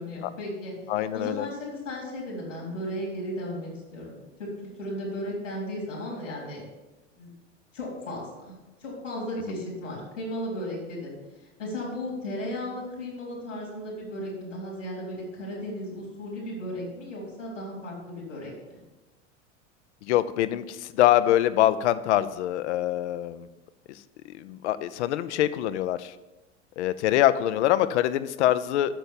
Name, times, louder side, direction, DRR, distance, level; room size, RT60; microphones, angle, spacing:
voice 1, 0.0-0.7 1.1-6.7 7.1-7.3 7.7-8.5 8.8-11.2 11.4-18.8, left 1 dB, 90° left, -3 dB, 4.0 m, -35 dB
voice 2, 0.9-1.5 20.1-23.5 24.3-26.1 26.8-29.0, left 13 dB, 65° left, 13 dB, 0.8 m, -24 dB
9.0 x 6.5 x 7.2 m, 1.1 s
hypercardioid pair, 85°, 37 cm